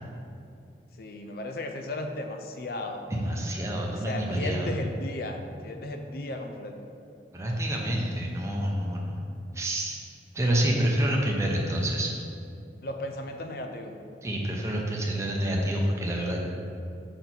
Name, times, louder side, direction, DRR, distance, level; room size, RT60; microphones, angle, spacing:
voice 1, 1.0-3.1 3.9-6.8 12.8-14.0, left 1 dB, 60° left, 5 dB, 0.5 m, -35 dB
voice 2, 3.1-4.7 7.3-9.2 9.5-10.1 10.3-12.1 14.2-16.4, right 1 dB, 15° right, -2 dB, 0.7 m, -28 dB
6.7 x 4.3 x 4.4 m, 2.5 s
head